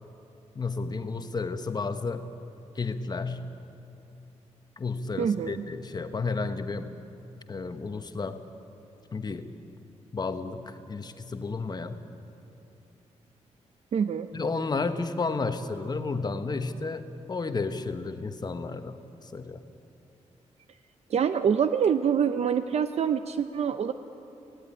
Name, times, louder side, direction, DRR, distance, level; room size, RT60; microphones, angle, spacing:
voice 1, 0.5-2.3 2.7-3.5 4.8-7.0 7.5-8.4 9.1-9.5 10.1-12.0 14.3-19.6, left 4 dB, 35° left, 9 dB, 1.2 m, -32 dB
voice 2, 5.2-5.7 13.9-14.3 21.1-23.9, right 7 dB, 60° right, 10 dB, 0.6 m, -25 dB
17.5 x 16.5 x 9.8 m, 2.7 s
cardioid pair, 105°, 12 cm